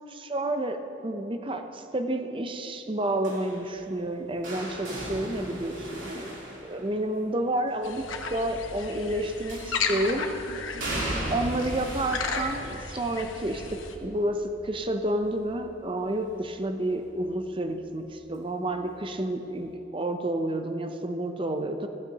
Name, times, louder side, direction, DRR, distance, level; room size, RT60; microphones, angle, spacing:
voice 1, 0.1-8.0 8.3-10.6 11.3-21.9, right 1 dB, 25° right, 7 dB, 0.6 m, -30 dB
sound 1, 3.2-7.3 9.5-10.1 10.8-16.6 17.0-17.4 18.6-18.7, right 1 dB, 80° right, 3.2 m, -37 dB
sound 2, 7.8-13.9, left 5 dB, 85° left, 1.1 m, -34 dB
15.5 x 15.0 x 2.9 m, 2.9 s
head